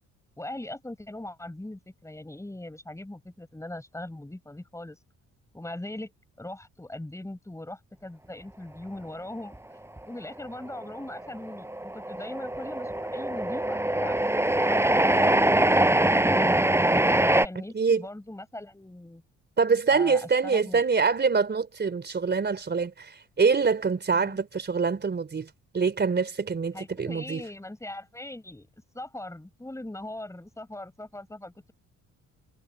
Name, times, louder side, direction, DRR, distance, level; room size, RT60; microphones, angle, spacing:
voice 1, 0.4-5.0 5.5-6.1 6.4-9.6 10.1-16.4 17.3-19.2 19.9-20.8 24.1-24.4 26.7-28.7 28.9-31.7, left 1 dB, 10° left, 7.6 m, -40 dB
Train, 10.0-10.1 10.3-17.5, right 1 dB, 10° right, 5.6 m, -23 dB
voice 2, 17.7-18.1 19.6-27.4, right 5 dB, 35° right, 3.9 m, -25 dB
cardioid pair, 90°, 30 cm